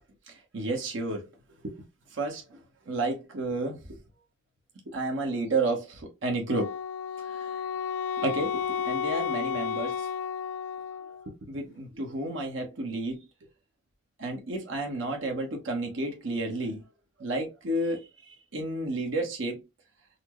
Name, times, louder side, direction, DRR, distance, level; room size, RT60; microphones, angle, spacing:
voice 1, 0.3-1.3 1.6-1.8 2.1-2.6 2.9-4.0 4.9-6.7 7.2-7.6 8.2-10.1 11.2-13.3 14.2-16.8 17.2-19.6, right 2 dB, 85° right, 0.9 m, -31 dB
Wind instrument woodwind instrument, 6.5-11.3, left 7 dB, 70° left, 0.4 m, -32 dB
4.1 x 2.0 x 3.0 m
head